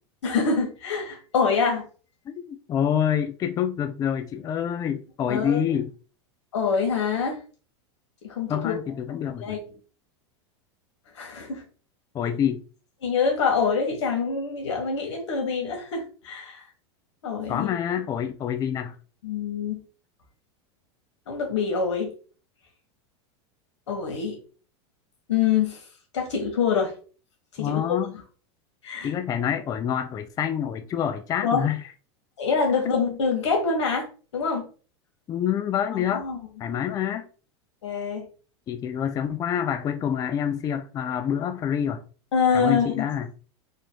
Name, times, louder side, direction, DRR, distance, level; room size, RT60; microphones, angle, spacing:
voice 1, 0.2-1.9 5.3-5.6 6.5-7.4 8.2-8.8 9.4-9.6 11.1-11.6 13.0-16.6 17.2-17.7 19.2-19.8 21.3-22.1 23.9-24.4 25.3-25.8 26.1-26.9 27.6-27.8 28.8-29.1 31.4-31.7 32.4-34.1 34.3-34.7 35.9-36.4 37.8-38.3 42.3-43.1, left 5 dB, 90° left, 1.8 m, -25 dB
voice 2, 2.3-5.9 8.5-9.6 12.1-12.6 17.5-18.9 27.6-28.1 29.0-31.8 35.3-36.2 36.6-37.3 38.7-42.0 42.5-43.3, left 9 dB, 25° left, 0.4 m, -27 dB
4.3 x 2.6 x 4.6 m
supercardioid pair, 130°, 15 cm